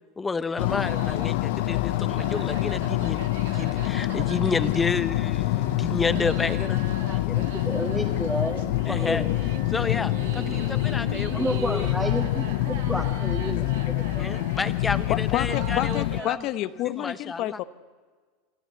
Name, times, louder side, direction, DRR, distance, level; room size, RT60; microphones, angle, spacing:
voice 1, 0.2-3.2 3.5-6.8 7.3-7.5 8.8-9.2 9.7-11.9 14.2-16.4 17.0-17.6, left 4 dB, 15° left, 12 dB, 1.0 m, -30 dB
sound 1, 0.6-16.2, left 17 dB, 70° left, 0.5 m, -26 dB
sound 2, 0.8-16.3, right 8 dB, 85° right, 1.6 m, -42 dB
voice 2, 7.6-9.3 10.3-10.7 11.3-14.3, equal, 5° right, 0 dB, 1.7 m, -31 dB
sound 3, 8.7-15.2, right 6 dB, 50° right, 3.6 m, -47 dB
voice 3, 15.1-17.6, left 14 dB, 50° left, 13 dB, 0.9 m, -29 dB
26.5 x 13.0 x 8.0 m, 1.5 s
supercardioid pair, 115°, 0 cm